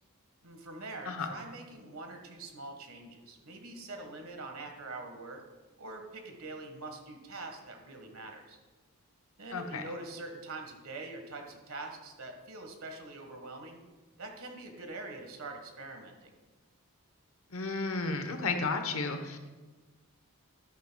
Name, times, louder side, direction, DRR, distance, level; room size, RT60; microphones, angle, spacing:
voice 1, 0.4-5.4 5.8-8.6 9.4-13.8 14.2-16.3, right 2 dB, 75° right, 4 dB, 1.4 m, -44 dB
voice 2, 9.5-9.8 17.5-19.4, left 3 dB, 65° left, 7 dB, 1.0 m, -33 dB
12.5 x 10.5 x 2.3 m, 1.2 s
head